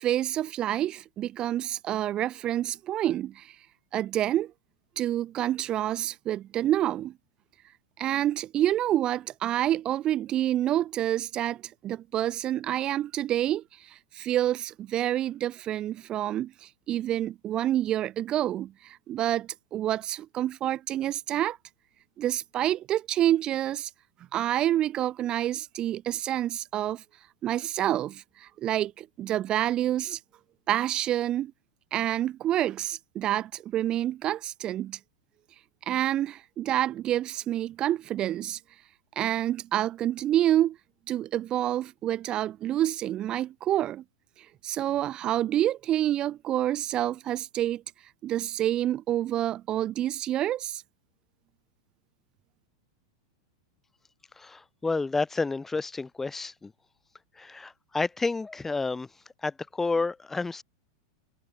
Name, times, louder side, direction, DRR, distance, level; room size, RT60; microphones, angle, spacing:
voice 1, 0.0-3.6 3.9-4.5 5.0-7.1 8.0-21.6 22.2-23.9 24.3-27.0 27.4-30.2 30.7-31.5 31.9-35.0 35.8-38.6 39.2-40.8 41.1-44.0 44.4-47.8 48.2-50.8, right 12 dB, 35° right, 1.7 m, -28 dB
voice 2, 54.4-56.7 57.4-59.1 59.4-60.6, left 3 dB, 10° left, 2.8 m, -30 dB
hypercardioid pair, 110°, 2 cm